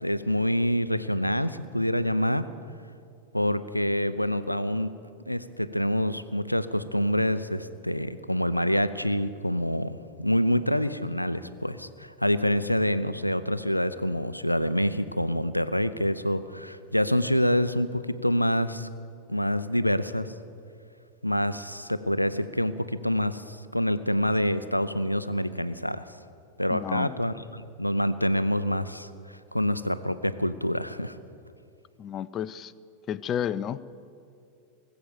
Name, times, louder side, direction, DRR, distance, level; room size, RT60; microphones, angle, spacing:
voice 1, 0.0-2.5 3.3-4.9 5.3-18.9 19.3-20.3 21.2-26.0 26.6-29.1 29.5-31.2, equal, 90° left, 13 dB, 0.5 m, -26 dB
voice 2, 26.7-27.2 32.0-32.7 33.1-33.9, left 9 dB, 30° left, 17 dB, 0.4 m, -32 dB
20.5 x 7.9 x 7.0 m, 2.5 s
figure-of-eight pair, 90°, 0 cm